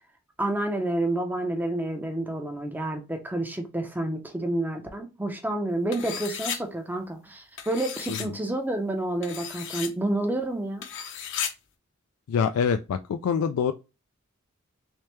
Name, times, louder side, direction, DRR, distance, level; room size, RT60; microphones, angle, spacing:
voice 1, 0.4-10.9, right 1 dB, 10° right, 0.6 m, -29 dB
sound 1, 5.9-6.6 7.6-8.3 9.2-9.9 10.8-11.5, left 8 dB, 60° left, 0.7 m, -34 dB
voice 2, 12.3-13.7, left 6 dB, 80° left, 0.3 m, -25 dB
3.3 x 3.2 x 3.0 m
head